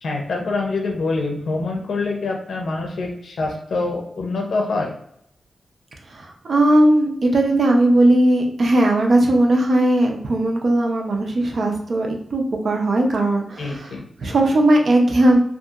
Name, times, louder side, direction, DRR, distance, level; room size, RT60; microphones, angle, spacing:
voice 1, 0.0-5.0 13.6-14.0, left 3 dB, 75° left, 1 dB, 0.5 m, -25 dB
voice 2, 6.1-13.9 14.2-15.4, right 1 dB, 60° right, 2 dB, 0.5 m, -18 dB
2.7 x 2.4 x 2.4 m, 0.71 s
wide cardioid pair, 100°, 0 cm